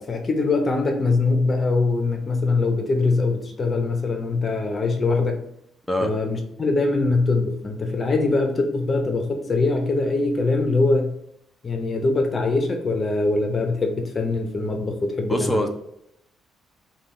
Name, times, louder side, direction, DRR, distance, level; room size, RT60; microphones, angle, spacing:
voice 1, 0.0-5.4 6.0-11.1 11.6-15.7, left 3 dB, 35° left, 3 dB, 0.8 m, -22 dB
voice 2, 15.3-15.7, equal, 5° left, 2 dB, 0.7 m, -23 dB
5.2 x 2.5 x 3.1 m, 0.76 s
cardioid pair, 90°, 0 cm